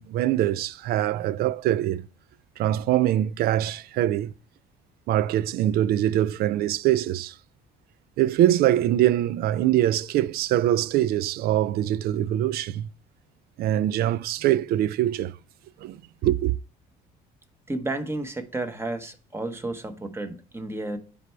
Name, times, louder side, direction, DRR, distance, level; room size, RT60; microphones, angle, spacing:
voice 1, 0.0-2.1 2.6-4.3 5.1-7.3 8.2-12.9 13.6-15.3 15.8-16.5, right 12 dB, 65° right, 0.4 m, -23 dB
voice 2, 17.7-21.0, right 2 dB, 15° right, 1.1 m, -32 dB
10.0 x 3.4 x 4.5 m
cardioid pair, 110°, 17 cm